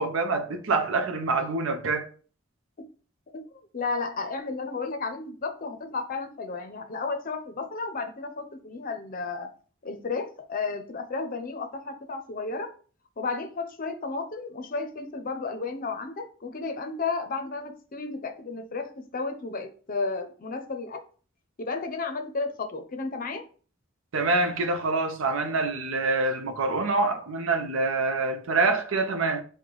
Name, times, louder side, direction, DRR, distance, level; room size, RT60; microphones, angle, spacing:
voice 1, 0.0-2.1 24.1-29.4, right 3 dB, 75° right, 0.6 m, -26 dB
voice 2, 3.3-9.5 9.8-12.7 13.2-21.0 21.6-23.4, left 4 dB, 45° left, 0.6 m, -33 dB
4.8 x 2.2 x 3.8 m
head